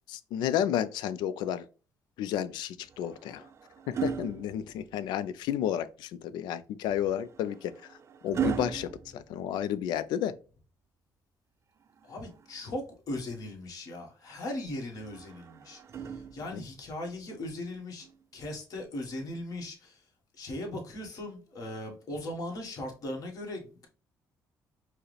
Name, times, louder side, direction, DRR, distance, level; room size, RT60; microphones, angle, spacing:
voice 1, 0.1-1.7 2.2-3.5 3.9-8.0 8.2-10.3 16.5-16.6, left 10 dB, 80° left, 0.4 m, -32 dB
sound 1, 2.8-5.3 6.9-10.0 11.8-13.0 15.0-16.8 18.0-18.2, right 7 dB, 40° right, 0.3 m, -38 dB
voice 2, 12.1-18.1 18.3-20.0 20.4-23.7, left 1 dB, 55° left, 1.3 m, -38 dB
4.6 x 2.1 x 3.1 m
cardioid pair, 100°, 7 cm